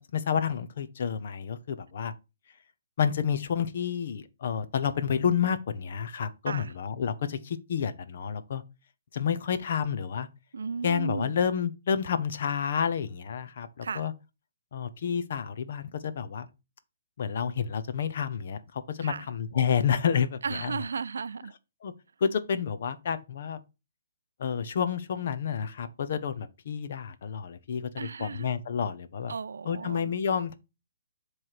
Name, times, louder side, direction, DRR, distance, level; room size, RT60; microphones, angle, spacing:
voice 1, 0.1-2.1 3.0-8.6 9.1-10.3 10.8-14.1 14.7-16.5 17.2-20.8 21.8-21.9 22.2-23.6 24.4-29.3 29.6-30.5, left 7 dB, 45° left, 0.7 m, -29 dB
voice 2, 10.5-11.4 13.8-14.1 19.0-19.3 20.4-21.5 28.0-28.5 29.3-30.1, right 5 dB, 80° right, 0.3 m, -35 dB
7.6 x 3.2 x 5.7 m
hypercardioid pair, 175°, 0 cm